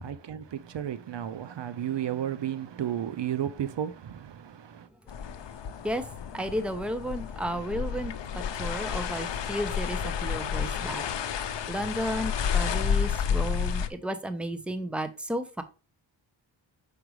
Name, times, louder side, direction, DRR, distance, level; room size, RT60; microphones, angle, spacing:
voice 1, 0.0-4.9, right 10 dB, 60° right, 0.6 m, -33 dB
sound 1, 5.1-13.9, left 7 dB, 60° left, 0.7 m, -31 dB
voice 2, 6.3-11.0 11.7-15.6, equal, ahead, 0.8 m, -33 dB
6.0 x 5.2 x 3.1 m
cardioid pair, 80°, 49 cm